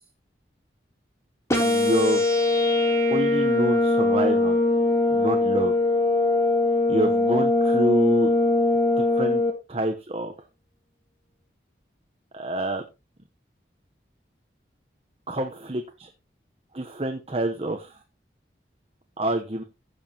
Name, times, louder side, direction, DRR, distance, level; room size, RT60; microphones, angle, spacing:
sound 1, 1.5-9.5, left 2 dB, 15° left, 3.3 m, -21 dB
voice 1, 1.6-2.2 3.1-4.6 5.1-5.7 6.9-8.3 9.0-9.4 9.7-10.3 12.3-12.8 15.3-16.1 16.7-18.0 19.2-19.6, right 1 dB, 35° right, 5 dB, 1.0 m, -27 dB
15.5 x 7.1 x 3.0 m, 0.27 s
head